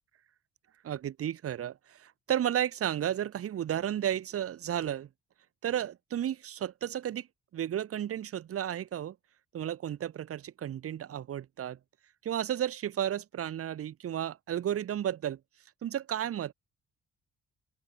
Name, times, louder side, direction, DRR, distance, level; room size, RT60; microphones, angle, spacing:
voice 1, 0.8-5.1 5.6-7.3 7.5-9.2 9.5-11.8 12.2-15.4 15.8-16.5, right 10 dB, 50° right, 0.8 m, -33 dB
open air
cardioid pair, 90°, 30 cm